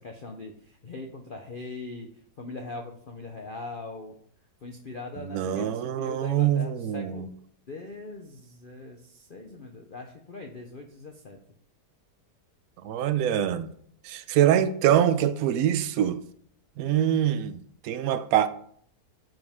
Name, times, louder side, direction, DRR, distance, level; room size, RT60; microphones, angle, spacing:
voice 1, 0.0-2.1 2.4-4.1 4.6-7.3 7.7-11.4, left 3 dB, 45° left, 0.7 m, -41 dB
voice 2, 5.3-7.3 12.8-13.7 14.0-16.2 16.8-18.5, right 10 dB, 65° right, 1.0 m, -24 dB
12.5 x 5.3 x 3.6 m
omnidirectional pair, 1.9 m